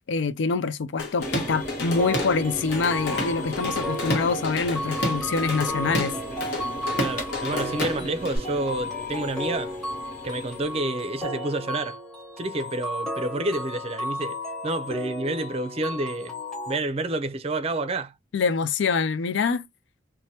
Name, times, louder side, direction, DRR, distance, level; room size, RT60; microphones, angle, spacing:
voice 1, 0.1-6.1 18.3-19.7, left 4 dB, 90° left, 0.4 m, -25 dB
Drum kit / Drum, 1.0-2.4 2.7-8.4, left 1 dB, 65° left, 1.1 m, -30 dB
sound 1, 1.2-10.8, equal, 50° left, 1.3 m, -37 dB
sound 2, 2.0-16.8, left 1 dB, 5° left, 0.9 m, -33 dB
voice 2, 7.0-9.7 10.2-12.0 12.4-16.3 16.7-18.2, right 2 dB, 35° right, 0.5 m, -29 dB
3.3 x 2.2 x 2.7 m
head